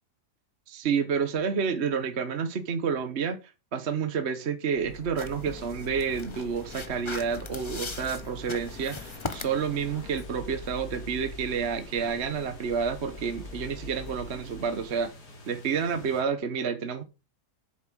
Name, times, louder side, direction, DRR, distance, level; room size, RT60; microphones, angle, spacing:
voice 1, 0.7-3.4 3.7-15.1 15.5-17.0, right 6 dB, 45° right, 1.2 m, -29 dB
Printer, 4.7-15.1, left 2 dB, 60° left, 2.6 m, -44 dB
sound 1, 5.2-10.2, left 4 dB, 30° left, 0.6 m, -40 dB
sound 2, 8.5-16.2, left 2 dB, 75° left, 3.4 m, -50 dB
9.1 x 7.2 x 6.2 m
omnidirectional pair, 1.8 m